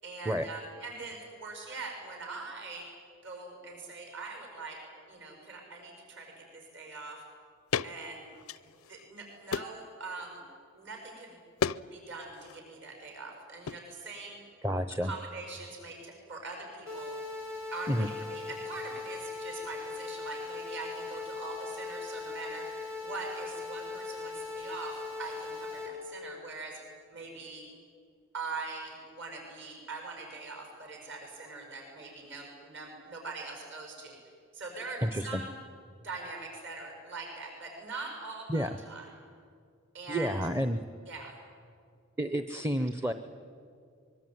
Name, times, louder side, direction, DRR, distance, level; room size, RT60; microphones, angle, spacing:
voice 1, 0.0-2.9 3.2-4.8 5.1-7.2 7.8-8.2 8.6-10.4 10.7-11.4 11.9-14.4 15.0-17.2 17.7-22.7 23.0-26.8 27.1-27.7 28.3-34.2 34.5-35.5 36.0-39.0 39.9-40.3 41.1-41.4, right 3 dB, 55° right, 2 dB, 6.5 m, -42 dB
sound 1, 7.7-7.9 8.4-9.0 9.5-9.9 11.6-11.8 12.1-12.6 13.7-13.8, left 7 dB, 85° left, 0.5 m, -33 dB
voice 2, 14.6-15.1 17.9-18.1 35.0-35.4 38.5-38.8 40.1-40.8 42.2-43.1, equal, 15° right, 10 dB, 0.7 m, -30 dB
sound 2, 16.9-25.9, left 4 dB, 75° right, 7.3 m, -39 dB
24.5 x 23.0 x 9.4 m, 2.3 s
head